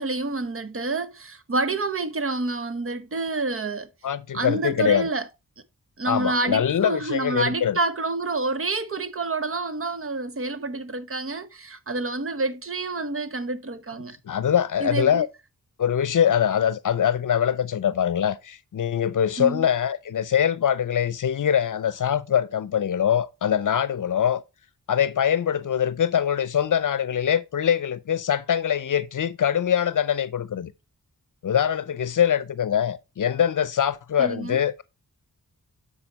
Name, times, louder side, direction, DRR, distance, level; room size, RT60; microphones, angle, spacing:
voice 1, 0.0-3.9 4.3-5.3 6.0-14.2 14.8-15.2 19.4-19.6 34.2-34.6, right 3 dB, 40° right, 0.9 m, -28 dB
voice 2, 4.0-5.1 6.1-7.8 14.3-15.3 15.8-24.4 24.9-30.7 31.4-34.8, left 9 dB, 65° left, 0.6 m, -23 dB
9.1 x 4.2 x 4.1 m
wide cardioid pair, 70°, 34 cm